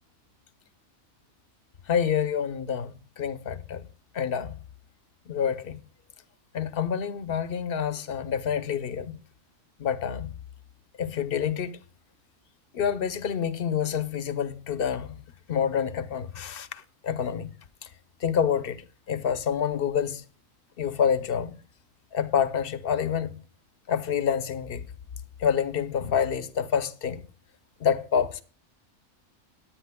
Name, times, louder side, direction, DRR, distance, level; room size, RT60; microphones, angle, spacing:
voice 1, 1.9-3.8 4.1-4.6 5.3-5.8 6.5-9.2 9.8-10.3 11.0-11.8 12.7-15.2 15.5-17.5 18.2-18.8 19.1-20.2 20.8-21.5 22.1-23.4 23.9-24.8 25.4-27.2 27.8-28.4, left 7 dB, 55° left, 0.8 m, -27 dB
20.0 x 9.0 x 2.2 m
omnidirectional pair, 1.4 m